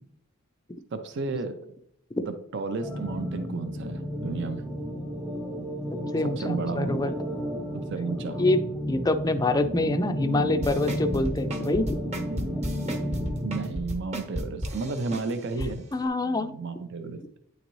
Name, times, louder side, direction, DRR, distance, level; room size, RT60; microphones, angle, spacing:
voice 1, 0.9-1.7 2.2-4.6 6.2-7.0 7.7-8.4 13.4-15.9 16.2-17.2, right 4 dB, 55° right, 8 dB, 0.5 m, -33 dB
sound 1, 2.8-13.7, equal, 5° right, 0.7 m, -32 dB
voice 2, 6.1-7.1 8.4-8.6 8.9-12.0 15.9-16.5, left 2 dB, 15° left, 9 dB, 0.3 m, -25 dB
sound 2, 10.6-15.7 16.1-16.2, equal, 30° right, 1.0 m, -33 dB
9.3 x 3.9 x 3.1 m, 0.72 s
head